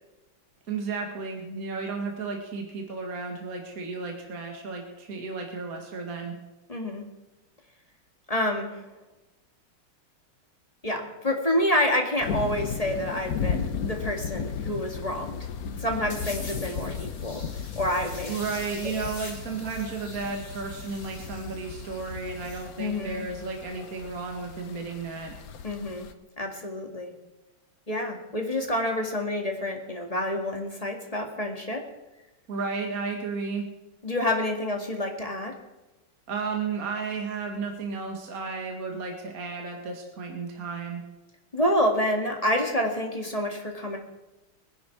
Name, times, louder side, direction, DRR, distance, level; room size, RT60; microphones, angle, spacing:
voice 1, 0.7-6.4 18.3-25.3 32.5-33.6 36.3-41.0, right 4 dB, 40° right, 2 dB, 2.4 m, -33 dB
voice 2, 6.7-7.0 8.3-8.8 10.8-15.4 15.8-17.4 17.8-18.3 18.8-19.0 22.8-23.3 25.6-26.1 26.4-27.1 27.9-31.8 34.0-35.5 41.5-44.0, left 1 dB, 20° left, 2 dB, 1.9 m, -28 dB
sound 1, 12.2-26.1, left 6 dB, 60° left, 1.1 m, -35 dB
sound 2, 16.1-22.7, left 2 dB, 90° left, 4.2 m, -44 dB
23.0 x 10.5 x 4.7 m, 1.0 s
omnidirectional pair, 2.3 m